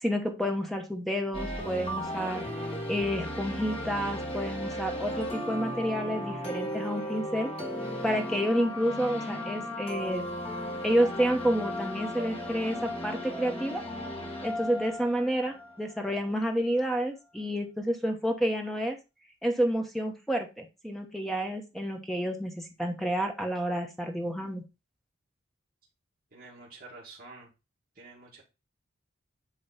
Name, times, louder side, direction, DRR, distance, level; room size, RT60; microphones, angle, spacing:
voice 1, 0.0-2.4 2.9-7.5 8.0-10.2 10.8-13.8 14.4-19.0 19.4-24.6, equal, ahead, 3 dB, 1.1 m, -29 dB
sound 1, 1.3-16.2, left 1 dB, 30° left, 1.7 m, -36 dB
voice 2, 26.3-27.5 28.0-28.4, right 3 dB, 45° right, -7 dB, 2.1 m, -48 dB
8.9 x 3.2 x 4.2 m, 0.28 s
head